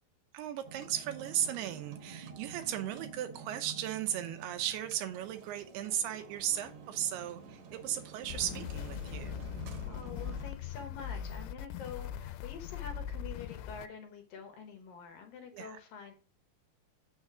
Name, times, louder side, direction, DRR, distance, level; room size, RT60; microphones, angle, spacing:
voice 1, 0.3-9.4 15.5-15.8, right 11 dB, 80° right, 9 dB, 2.5 m, -36 dB
sound 1, 0.6-10.5, right 5 dB, 65° right, 2.0 m, -49 dB
sound 2, 8.2-13.9, left 9 dB, 90° left, 2.8 m, -40 dB
voice 2, 9.9-16.1, left 5 dB, 70° left, 5 dB, 2.5 m, -46 dB
7.2 x 6.5 x 4.8 m, 0.37 s
omnidirectional pair, 4.9 m